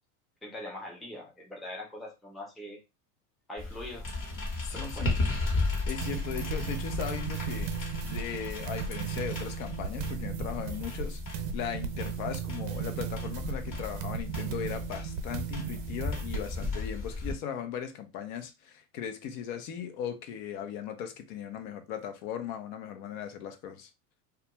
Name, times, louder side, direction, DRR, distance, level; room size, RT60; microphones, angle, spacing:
voice 1, 0.4-2.8 3.5-4.1 4.7-5.1, left 1 dB, ahead, 0.5 m, -42 dB
sound 1, 3.6-17.3, left 3 dB, 25° left, 1.0 m, -35 dB
voice 2, 4.6-5.2 5.7-7.7 8.0-23.9, left 8 dB, 60° left, 0.7 m, -38 dB
sound 2, 6.0-16.7, right 8 dB, 70° right, 0.7 m, -37 dB
2.3 x 2.3 x 2.9 m
supercardioid pair, 115°, 49 cm